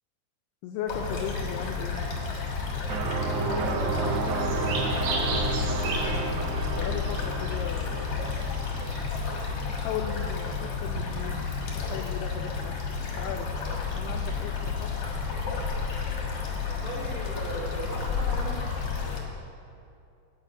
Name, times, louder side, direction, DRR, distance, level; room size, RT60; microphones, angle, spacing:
voice 1, 0.6-2.0 5.6-8.1 9.8-12.8 13.0-13.5 13.9-14.9, left 8 dB, 90° left, 4 dB, 2.3 m, -37 dB
sound 1, 0.9-19.2, left 5 dB, 70° left, 1.4 m, -31 dB
sound 2, 2.9-9.6, right 4 dB, 90° right, 2.0 m, -32 dB
voice 2, 3.3-4.8 16.7-18.7, right 2 dB, 55° right, -9 dB, 2.8 m, -36 dB
sound 3, 3.5-9.1, right 3 dB, 75° right, 3.5 m, -37 dB
10.0 x 5.8 x 8.1 m, 2.5 s
omnidirectional pair, 5.3 m